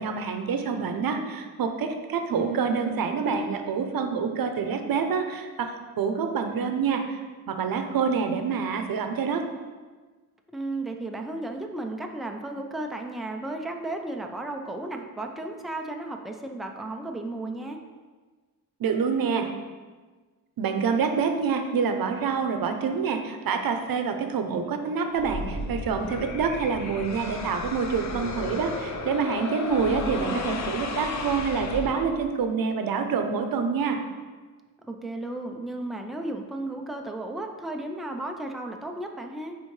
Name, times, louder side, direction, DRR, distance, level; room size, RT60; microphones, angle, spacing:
voice 1, 0.0-9.4 18.8-19.5 20.6-34.0, right 5 dB, 80° right, 6 dB, 0.7 m, -27 dB
voice 2, 2.3-3.5 10.5-17.8 29.7-30.5 34.9-39.5, right 2 dB, ahead, 3 dB, 0.5 m, -34 dB
sound 1, 25.2-32.4, left 3 dB, 55° left, 0.6 m, -34 dB
9.5 x 3.7 x 3.2 m, 1.4 s
wide cardioid pair, 105°, 34 cm